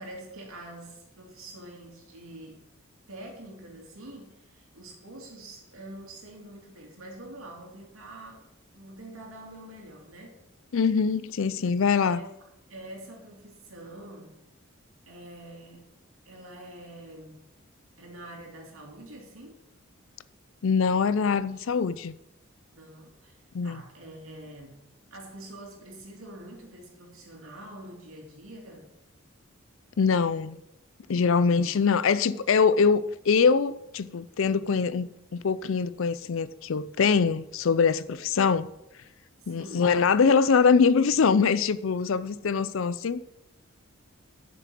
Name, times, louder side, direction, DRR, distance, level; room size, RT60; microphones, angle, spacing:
voice 1, 0.0-2.6 3.1-8.5 8.7-10.5 11.9-12.3 12.7-14.4 15.1-15.9 16.2-17.4 18.0-19.6 22.7-28.9 31.4-31.9 39.4-40.0, right 1 dB, 80° right, 2.8 m, -45 dB
voice 2, 10.7-12.2 20.6-22.1 23.5-23.8 30.0-30.6 31.1-38.7 39.5-43.2, left 5 dB, 70° left, 0.5 m, -23 dB
7.4 x 6.9 x 7.6 m
head